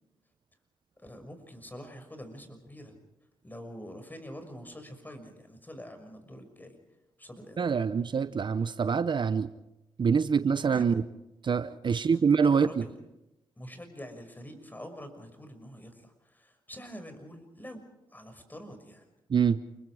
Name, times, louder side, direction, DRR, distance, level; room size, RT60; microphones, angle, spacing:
voice 1, 1.0-3.0 3.4-6.8 7.2-7.6 10.7-11.0 11.8-12.9 13.6-17.8 18.1-19.0, equal, 20° left, 6.1 m, -46 dB
voice 2, 7.6-9.5 10.0-11.0 11.4-12.8 19.3-19.6, right 6 dB, 50° right, 0.8 m, -25 dB
29.0 x 21.5 x 4.9 m
supercardioid pair, 50°, 10 cm